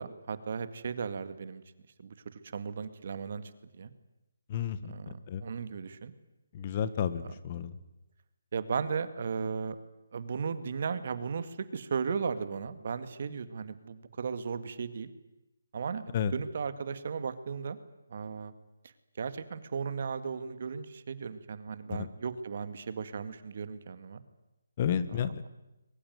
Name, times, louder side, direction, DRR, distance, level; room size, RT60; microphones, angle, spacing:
voice 1, 0.0-1.6 2.0-3.4 3.8-3.9 4.9-6.1 8.5-9.8 10.1-15.1 15.7-17.8 18.1-18.5 19.2-24.2 25.1-25.3, right 6 dB, 50° right, 12 dB, 1.9 m, -36 dB
voice 2, 4.5-4.9 5.3-5.4 6.5-7.8 16.1-16.3 21.9-22.1 24.8-25.4, left 8 dB, 30° left, 14 dB, 1.4 m, -31 dB
22.0 x 21.0 x 9.3 m, 0.95 s
hypercardioid pair, 165°, 0 cm